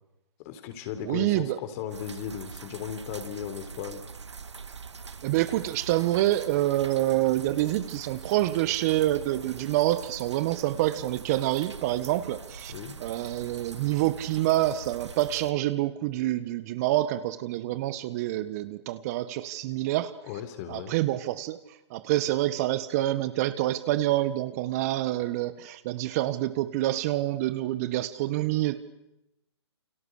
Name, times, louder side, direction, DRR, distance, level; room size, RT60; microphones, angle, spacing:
voice 1, 0.4-4.0 12.7-13.0 20.3-20.9, left 9 dB, 35° left, 10 dB, 4.1 m, -36 dB
voice 2, 1.0-1.6 5.2-12.7 13.0-20.1 20.7-21.6 21.9-28.8, right 15 dB, 35° right, 14 dB, 1.4 m, -27 dB
sound 1, 1.9-15.5, right 5 dB, 85° right, 1.7 m, -43 dB
29.5 x 27.0 x 6.6 m, 0.87 s
hypercardioid pair, 140°, 14 cm